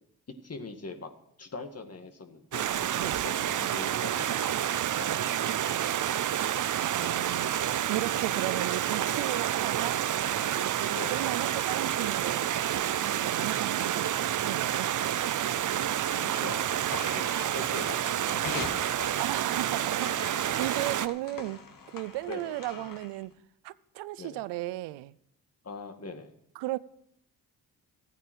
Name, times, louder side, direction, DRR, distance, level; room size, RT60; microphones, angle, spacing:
voice 1, 0.4-1.1 1.4-5.7 7.0-7.4 10.9-11.2 13.4-13.6 15.0-15.1 16.2-17.2 17.5-19.1 22.3-22.6 24.2-24.4 25.6-26.3, left 3 dB, 40° left, 2.0 m, -43 dB
Stream, 2.5-21.1, right 10 dB, 50° right, 0.7 m, -29 dB
voice 2, 6.9-10.1 10.5-12.5 13.2-14.1 14.4-15.0 19.2-21.6 21.9-23.3 23.6-25.1 26.6-26.8, right 17 dB, 85° right, 0.6 m, -35 dB
sound 1, 16.9-23.2, left 5 dB, 55° left, 2.2 m, -43 dB
14.0 x 9.3 x 6.2 m
supercardioid pair, 55°, 40 cm